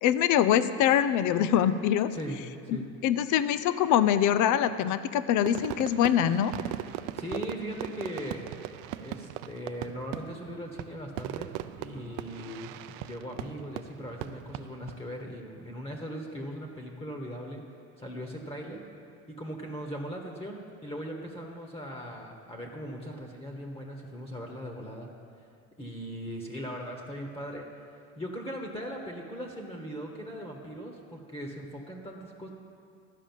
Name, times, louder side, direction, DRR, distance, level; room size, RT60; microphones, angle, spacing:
voice 1, 0.0-2.1 2.7-6.5, left 10 dB, 55° left, 13 dB, 0.6 m, -24 dB
voice 2, 2.1-2.9 7.2-8.4 8.9-11.5 11.8-17.6 18.0-18.8 19.3-25.1 25.8-27.7 28.2-32.5, equal, 15° left, 1 dB, 1.4 m, -39 dB
Fireworks, 5.5-15.0, right 13 dB, 75° right, 0.5 m, -39 dB
12.0 x 5.0 x 7.4 m, 2.4 s
supercardioid pair, 90°, 36 cm